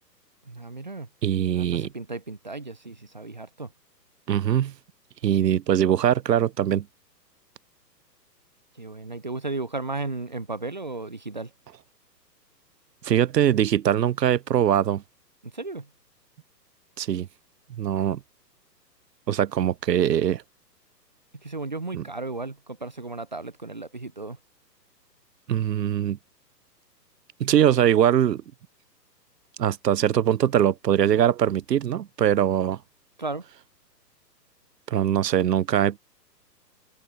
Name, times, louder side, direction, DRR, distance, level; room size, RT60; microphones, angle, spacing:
voice 1, 0.5-1.1 1.5-3.7 8.7-11.5 15.4-15.9 21.3-24.4 33.2-33.5, right 3 dB, 30° right, 0.4 m, -34 dB
voice 2, 1.2-1.9 4.3-4.7 5.2-6.9 13.0-15.0 17.0-17.3 17.7-18.2 19.3-20.4 21.9-22.0 25.5-26.2 27.4-28.4 29.6-32.8 34.9-36.0, right 10 dB, 75° right, 0.6 m, -22 dB
figure-of-eight pair, 125°, 50 cm